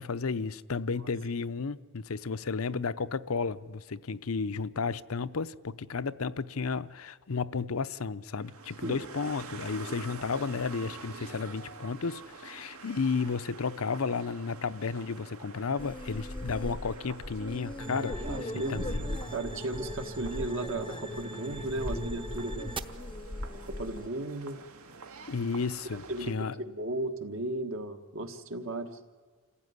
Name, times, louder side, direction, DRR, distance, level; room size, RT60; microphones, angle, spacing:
voice 1, 0.0-18.2 18.7-19.0 25.3-26.6, left 4 dB, 75° left, 0.7 m, -33 dB
sound 1, 8.4-26.3, right 4 dB, 80° right, 2.1 m, -48 dB
sound 2, 15.8-24.1, left 1 dB, 20° left, 0.6 m, -39 dB
sound 3, 17.8-22.8, right 2 dB, 25° right, 0.8 m, -41 dB
voice 2, 18.2-22.7 23.7-24.6 26.1-28.9, right 2 dB, 60° right, 1.5 m, -35 dB
27.5 x 15.5 x 9.6 m
head